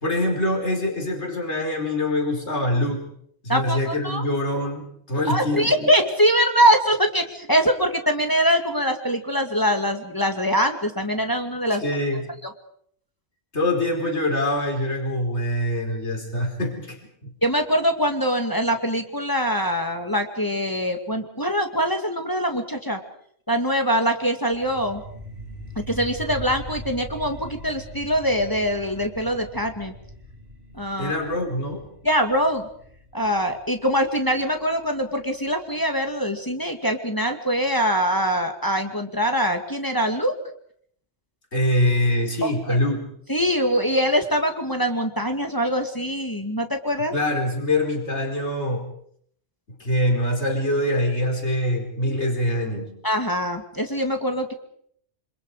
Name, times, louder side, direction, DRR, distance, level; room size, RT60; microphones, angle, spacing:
voice 1, 0.0-3.0 3.4-5.9 11.7-12.3 13.5-17.3 31.0-31.8 41.5-43.1 47.1-48.9 49.8-52.9, left 1 dB, 75° left, 2 dB, 4.9 m, -24 dB
voice 2, 3.5-4.2 5.3-11.8 12.4-12.5 17.4-23.0 23.5-25.0 25.8-29.9 30.7-31.1 32.0-32.7 33.1-40.4 42.4-42.8 43.3-47.1 53.0-54.5, equal, 20° left, 4 dB, 2.2 m, -23 dB
sound 1, 24.5-35.5, equal, 65° right, 5.5 m, -41 dB
27.5 x 26.5 x 4.9 m, 0.65 s
omnidirectional pair, 1.2 m